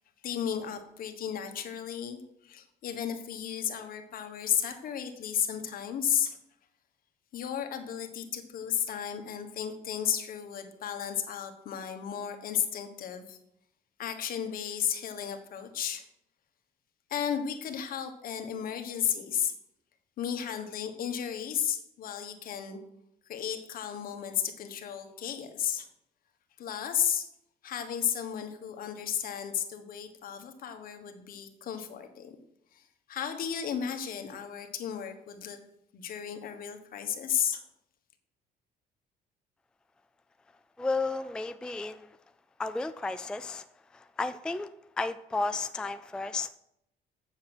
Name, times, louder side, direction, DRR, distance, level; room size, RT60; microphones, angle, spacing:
voice 1, 0.2-6.4 7.3-13.4 14.0-16.0 17.1-19.5 20.2-22.8 23.3-25.9 26.6-27.3 27.6-32.4 32.7-32.8 33.1-35.6 35.9-37.6, left 9 dB, 60° left, 7 dB, 1.4 m, -33 dB
voice 2, 40.8-42.1 42.6-43.6 43.9-44.7 45.0-46.6, left 3 dB, 5° left, 11 dB, 0.3 m, -33 dB
7.5 x 7.3 x 6.1 m, 0.79 s
cardioid pair, 110°, 17 cm